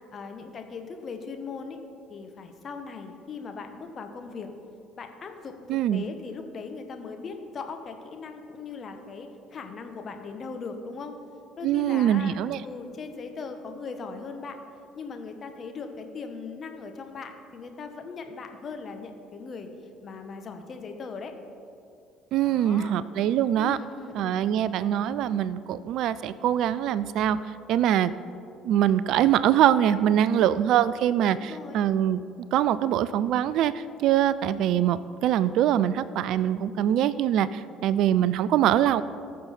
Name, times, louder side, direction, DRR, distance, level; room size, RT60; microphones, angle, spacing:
voice 1, 0.1-1.8 2.1-4.5 5.0-11.1 11.6-12.4 12.6-14.6 14.9-19.7 20.0-21.3 22.4-22.9 23.6-24.5 31.3-31.8, left 4 dB, 40° left, 6 dB, 1.3 m, -39 dB
voice 2, 5.7-6.0 11.6-12.6 22.3-23.8 24.1-28.1 28.6-32.2 32.5-39.0, right 11 dB, 55° right, 17 dB, 0.3 m, -23 dB
19.0 x 6.4 x 4.3 m, 2.5 s
figure-of-eight pair, 50°, 0 cm